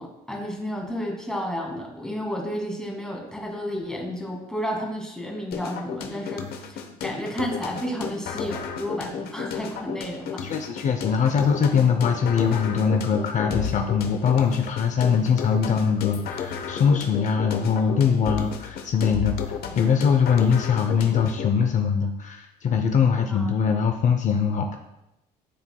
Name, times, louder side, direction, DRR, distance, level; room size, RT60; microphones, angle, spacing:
voice 1, 0.0-10.4 23.3-23.5, equal, 5° left, -1 dB, 1.9 m, -32 dB
sound 1, 5.5-21.5, left 7 dB, 70° left, 0.9 m, -33 dB
voice 2, 10.4-24.8, left 6 dB, 45° left, 5 dB, 0.6 m, -22 dB
13.0 x 4.5 x 2.3 m, 0.92 s
cardioid pair, 110°, 17 cm